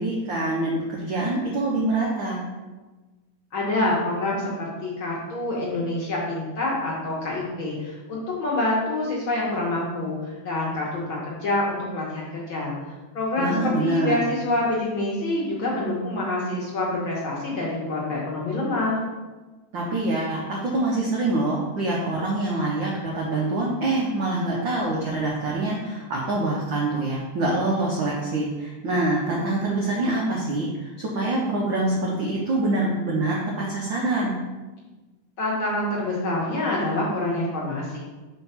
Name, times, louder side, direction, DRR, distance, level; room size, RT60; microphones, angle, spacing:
voice 1, 0.0-2.4 13.4-14.2 19.7-34.3, right 2 dB, 85° right, -3 dB, 1.0 m, -25 dB
voice 2, 3.5-12.8 13.1-19.0 35.4-38.0, left 2 dB, 60° left, -5 dB, 1.5 m, -26 dB
4.6 x 4.5 x 5.5 m, 1.2 s
omnidirectional pair, 3.4 m